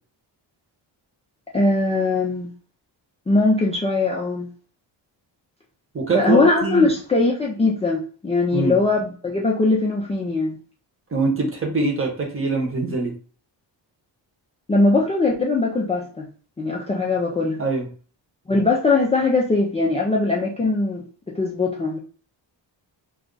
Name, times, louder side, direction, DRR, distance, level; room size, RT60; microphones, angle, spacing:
voice 1, 1.5-2.5 3.3-4.5 6.1-10.6 14.7-16.3 16.6-17.6 18.5-22.0, left 3 dB, 15° left, -3 dB, 0.4 m, -21 dB
voice 2, 5.9-6.9 8.5-8.8 11.1-13.1 17.6-17.9, right 3 dB, 30° right, 1 dB, 0.9 m, -23 dB
2.4 x 2.3 x 3.7 m, 0.40 s
cardioid pair, 105°, 45 cm